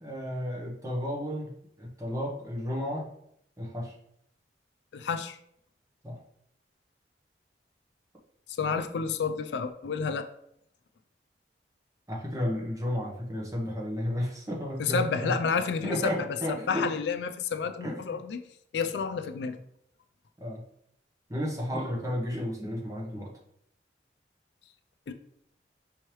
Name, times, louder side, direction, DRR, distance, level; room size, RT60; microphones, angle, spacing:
voice 1, 0.0-3.1 3.6-4.0 6.0-6.2 12.1-15.4 15.8-16.9 17.8-18.2 20.4-20.6 21.3-23.3, equal, 20° right, -2 dB, 0.9 m, -33 dB
voice 2, 4.9-5.4 8.6-10.3 14.8-18.4 18.7-19.6 25.1-25.2, left 5 dB, 70° left, 8 dB, 0.3 m, -30 dB
5.4 x 3.2 x 3.0 m, 0.73 s
head